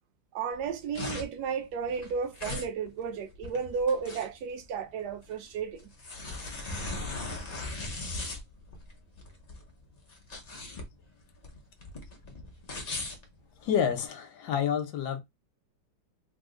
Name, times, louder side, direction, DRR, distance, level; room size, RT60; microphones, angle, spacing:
voice 1, 0.3-5.9, right 6 dB, 70° right, 1.1 m, -33 dB
sound 1, 0.5-14.0, left 2 dB, 85° left, 0.3 m, -39 dB
voice 2, 13.6-15.2, left 8 dB, 70° left, 1.2 m, -29 dB
3.5 x 2.0 x 3.6 m
omnidirectional pair, 2.0 m